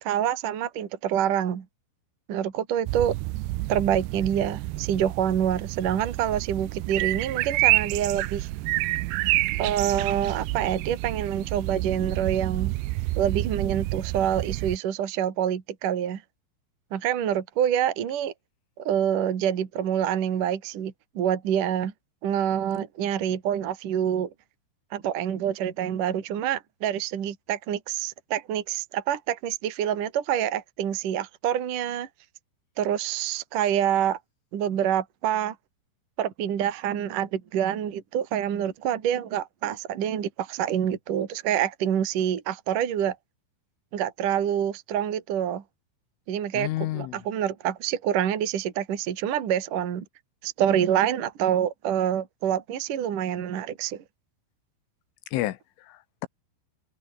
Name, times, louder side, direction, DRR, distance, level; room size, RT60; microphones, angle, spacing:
voice 1, 0.0-1.6 2.3-3.1 3.7-8.5 9.6-12.7 13.2-16.2 16.9-18.3 18.8-21.9 22.2-24.3 24.9-32.1 32.8-34.2 34.5-35.5 36.2-43.2 43.9-45.6 46.3-46.7 46.9-50.0 50.4-54.0, right 10 dB, 50° right, 3.4 m, -26 dB
sound 1, 2.9-14.8, right 19 dB, 85° right, 2.4 m, -28 dB
voice 2, 46.5-47.2 55.3-56.3, left 16 dB, 80° left, 3.7 m, -31 dB
omnidirectional pair, 5.7 m